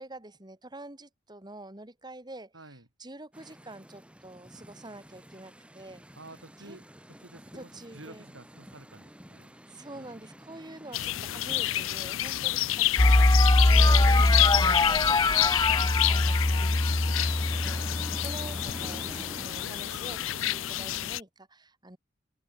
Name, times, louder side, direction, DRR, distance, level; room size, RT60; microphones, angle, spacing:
voice 1, 0.0-6.0 6.6-6.8 7.5-8.3 9.7-13.4 13.6-16.7 17.0-22.0, right 2 dB, 20° right, 3.3 m, -47 dB
voice 2, 2.5-2.9 6.2-9.6 9.9-10.2 12.4-12.8 14.7-15.0 17.7-17.9, right 2 dB, 80° right, 6.3 m, -51 dB
sound 1, 3.3-21.1, equal, 5° right, 5.1 m, -48 dB
sound 2, 10.9-21.2, left 15 dB, 85° left, 0.5 m, -29 dB
sound 3, 13.0-18.9, left 2 dB, 20° left, 0.7 m, -23 dB
open air
head